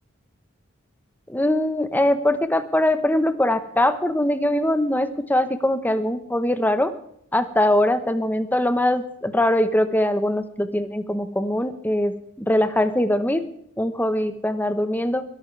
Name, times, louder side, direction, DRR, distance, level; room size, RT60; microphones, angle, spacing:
voice 1, 1.3-6.9 7.3-13.4 13.8-15.2, left 1 dB, 10° left, 9 dB, 1.1 m, -22 dB
22.0 x 14.0 x 3.4 m, 0.70 s
head